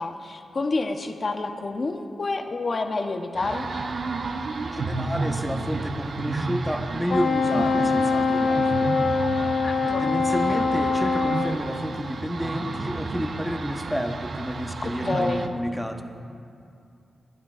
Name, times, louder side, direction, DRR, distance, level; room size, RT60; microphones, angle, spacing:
voice 1, 0.0-3.7 9.6-10.0 14.8-15.5, left 3 dB, 45° left, 5 dB, 0.8 m, -28 dB
sound 1, 3.3-15.5, right 3 dB, 65° right, 0.9 m, -32 dB
voice 2, 4.7-8.9 9.4-9.6 9.8-16.0, equal, 5° left, 4 dB, 1.1 m, -30 dB
Wind instrument woodwind instrument, 7.1-11.6, left 4 dB, 80° left, 0.8 m, -23 dB
29.5 x 10.0 x 2.4 m, 2.4 s
cardioid pair, 75°, 0 cm